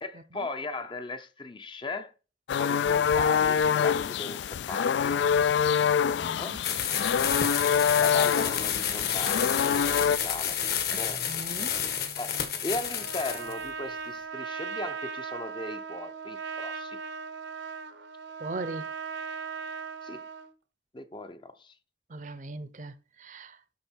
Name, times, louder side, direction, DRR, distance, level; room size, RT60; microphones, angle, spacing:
voice 1, 0.0-2.1 2.6-5.1 6.4-6.6 8.0-10.6 10.9-11.9 12.2-17.0 20.0-20.2 20.9-21.7, left 2 dB, 25° left, 0.6 m, -38 dB
sound 1, 2.5-10.2, left 7 dB, 75° left, 0.3 m, -25 dB
voice 2, 6.1-6.6 10.9-11.8 18.4-18.9 22.1-23.6, right 2 dB, 45° right, 0.6 m, -39 dB
sound 2, 6.6-13.5, left 8 dB, 55° left, 1.4 m, -30 dB
Trumpet, 12.9-20.5, right 5 dB, 75° right, 0.9 m, -38 dB
12.0 x 4.3 x 4.4 m
head